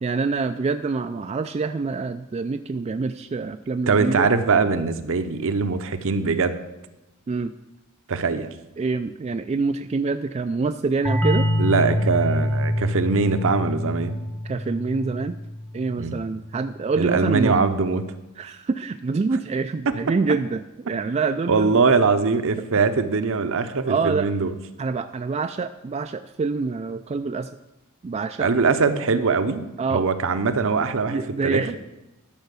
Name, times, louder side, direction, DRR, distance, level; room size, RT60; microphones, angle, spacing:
voice 1, 0.0-4.3 7.3-7.5 8.8-11.5 14.4-15.4 15.7-17.6 18.4-21.8 23.9-24.3 24.8-27.5 28.0-28.5 29.8-30.1 31.1-31.8, right 4 dB, 30° right, 9 dB, 0.3 m, -26 dB
voice 2, 3.9-6.6 8.1-8.5 11.6-14.1 16.0-16.2 17.0-18.0 21.5-24.5 28.4-29.6 29.9-31.6, right 4 dB, 65° right, 10 dB, 0.8 m, -22 dB
sound 1, 11.0-16.5, left 1 dB, 10° left, 0.8 m, -26 dB
12.0 x 5.7 x 6.8 m, 0.99 s
head